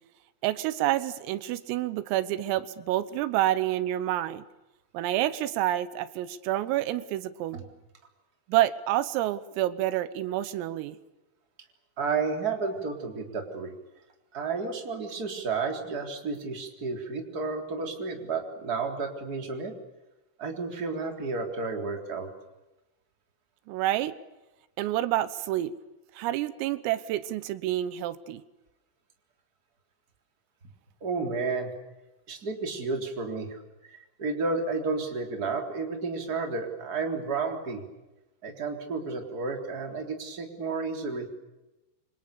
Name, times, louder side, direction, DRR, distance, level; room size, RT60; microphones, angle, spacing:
voice 1, 0.4-4.4 4.9-7.6 8.5-11.0 23.7-24.2 24.8-25.7 26.2-28.4, right 14 dB, 85° right, 14 dB, 3.8 m, -28 dB
voice 2, 12.0-13.7 14.3-19.7 20.4-22.3 31.0-31.7 32.3-37.8 38.4-41.3, right 4 dB, 20° right, 3 dB, 3.3 m, -32 dB
29.0 x 26.0 x 7.0 m, 1.0 s
omnidirectional pair, 5.9 m